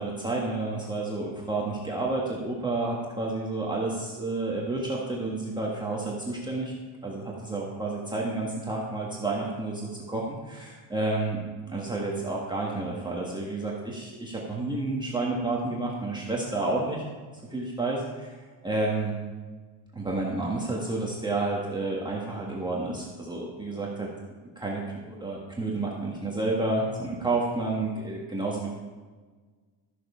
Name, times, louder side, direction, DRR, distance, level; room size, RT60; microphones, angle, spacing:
voice 1, 0.0-6.7 7.0-17.0 17.5-19.1 19.9-24.1 24.5-28.7, right 2 dB, 10° right, -4 dB, 1.5 m, -30 dB
13.0 x 7.8 x 5.6 m, 1.4 s
cardioid pair, 155°, 50 cm